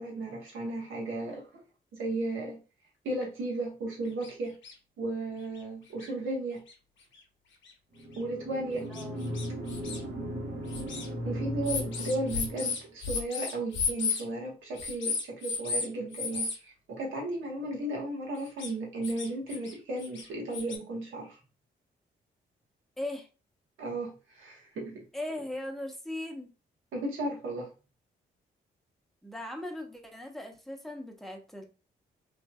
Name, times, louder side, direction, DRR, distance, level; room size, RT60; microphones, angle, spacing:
voice 1, 0.0-1.5 1.9-2.6 3.0-4.6 5.0-6.6 8.2-8.9 11.2-21.4 23.8-25.0 26.9-27.7, right 2 dB, 75° right, -1 dB, 1.3 m, -35 dB
sound 1, 4.2-4.3 4.6-4.7 5.6-5.7 6.0-6.1 6.7-6.8 7.7-7.8 8.1-8.2 8.9-10.0 10.7-11.1 11.6-14.2 14.8-15.9 16.1-16.6 18.4-18.7 19.0-19.7 20.0-20.8, left 5 dB, 65° left, 0.9 m, -33 dB
sound 2, 8.0-12.9, equal, 50° right, 1.2 m, -37 dB
voice 2, 23.0-23.3 25.1-26.5 29.2-31.6, left 1 dB, ahead, 2 dB, 0.9 m, -38 dB
3.2 x 2.6 x 2.3 m, 0.32 s
supercardioid pair, 50°, 21 cm